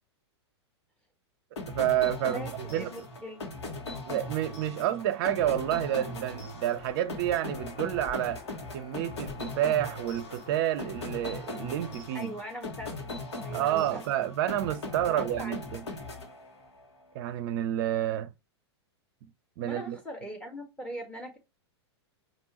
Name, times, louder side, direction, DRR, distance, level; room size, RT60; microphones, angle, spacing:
sound 1, 1.6-16.9, left 2 dB, 70° left, 1.4 m, -39 dB
voice 1, 1.7-3.1 4.1-8.4 8.7-12.3 13.5-15.9 17.1-18.3 19.6-20.0, right 12 dB, 55° right, 0.6 m, -29 dB
voice 2, 2.2-3.4 12.1-12.9 13.4-14.0 15.1-15.7 19.6-21.4, equal, 5° left, 1.5 m, -40 dB
Walk footsteps, 5.3-12.0, left 6 dB, 40° left, 0.9 m, -51 dB
5.3 x 2.7 x 2.9 m
hypercardioid pair, 100°, 14 cm